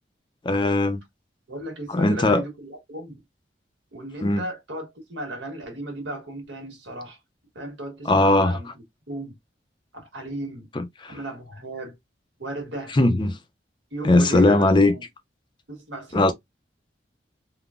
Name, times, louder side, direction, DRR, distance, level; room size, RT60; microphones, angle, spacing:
voice 1, 0.4-1.0 1.9-2.4 4.2-4.4 8.1-8.6 10.8-11.1 12.9-13.4 14.0-14.9 16.1-16.3, left 2 dB, 25° left, 0.4 m, -19 dB
voice 2, 1.5-3.2 3.9-7.2 7.5-9.4 9.9-10.7 11.1-12.0 12.4-12.9 13.9-15.0 15.7-16.3, right 1 dB, 85° right, 1.3 m, -35 dB
3.6 x 2.1 x 2.4 m
head